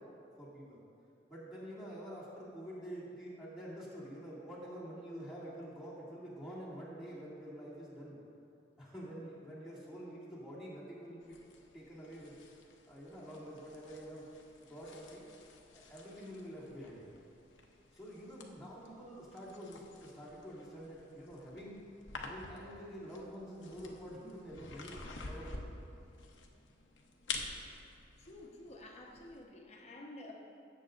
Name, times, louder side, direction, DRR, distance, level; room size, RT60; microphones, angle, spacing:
voice 1, 0.4-0.8 1.3-8.2 8.8-11.4 11.7-12.4 12.9-14.3 14.6-15.2 15.7-17.0 17.9-21.8 22.1-25.0 25.2-25.7, equal, ahead, -9 dB, 2.3 m, -47 dB
sound 1, 11.2-29.4, left 3 dB, 85° left, 0.9 m, -50 dB
voice 2, 28.2-30.3, left 1 dB, 35° left, -1 dB, 1.1 m, -51 dB
16.5 x 7.6 x 2.6 m, 2.6 s
head